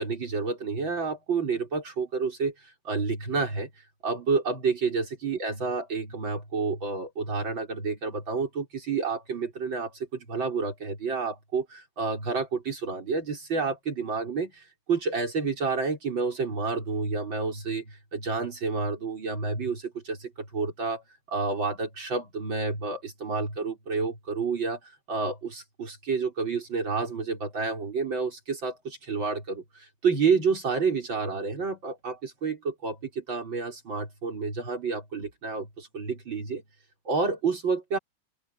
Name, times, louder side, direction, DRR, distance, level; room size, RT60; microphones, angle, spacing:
voice 1, 0.0-2.5 2.8-3.7 4.0-21.0 21.3-24.8 25.1-36.6 37.1-38.0, right 4 dB, 75° right, 5.9 m, -29 dB
open air
omnidirectional pair, 2.1 m